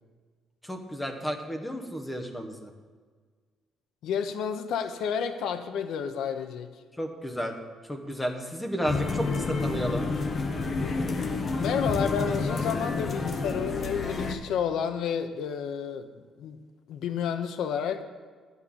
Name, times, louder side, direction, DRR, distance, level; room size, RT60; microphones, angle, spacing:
voice 1, 0.6-2.7 7.0-7.5 7.8-10.1, equal, 10° left, 4 dB, 1.0 m, -32 dB
voice 2, 4.0-6.7 11.6-16.6 16.9-18.0, left 7 dB, 70° left, 8 dB, 0.7 m, -30 dB
sound 1, 8.9-14.4, left 3 dB, 30° left, 0.9 m, -29 dB
11.0 x 5.5 x 8.6 m, 1.5 s
cardioid pair, 160°, 0 cm